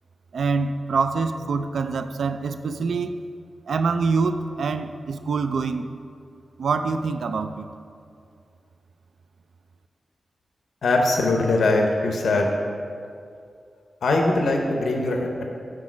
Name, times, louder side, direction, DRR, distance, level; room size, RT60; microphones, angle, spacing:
voice 1, 0.3-3.2 3.7-5.9 6.6-7.7, right 4 dB, 85° right, 10 dB, 0.3 m, -25 dB
voice 2, 10.8-12.5 14.0-15.5, left 2 dB, 85° left, 2 dB, 0.7 m, -21 dB
6.1 x 4.7 x 6.0 m, 2.4 s
wide cardioid pair, 155°, 0 cm